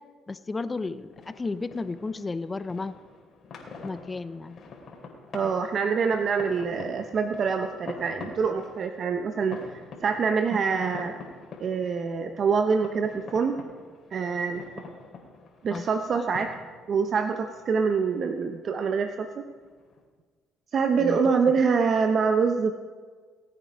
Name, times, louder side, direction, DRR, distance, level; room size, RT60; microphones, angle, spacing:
voice 1, 0.3-2.9 3.8-4.6 15.7-15.8 16.1-16.4 21.0-21.3, left 3 dB, 25° left, 13 dB, 0.6 m, -33 dB
sound 1, 0.7-20.0, left 4 dB, 50° left, 3.2 m, -46 dB
voice 2, 5.3-11.1 11.6-13.6 14.1-14.6 15.6-16.5 16.9-19.4 20.7-22.7, right 5 dB, 50° right, 7 dB, 0.8 m, -25 dB
19.0 x 8.9 x 5.1 m, 1.5 s
supercardioid pair, 80°, 0 cm